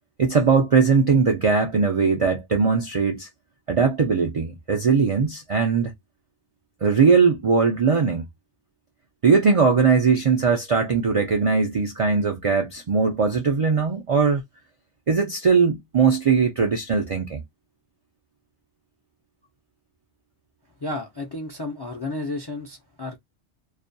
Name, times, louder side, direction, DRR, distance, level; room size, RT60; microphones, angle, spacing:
voice 1, 0.2-3.3 3.7-5.9 6.8-8.3 9.2-14.4 15.1-17.4, right 5 dB, 60° right, 0.3 m, -20 dB
voice 2, 20.8-23.2, left 2 dB, 40° left, 0.4 m, -32 dB
2.4 x 2.2 x 2.5 m
omnidirectional pair, 1.2 m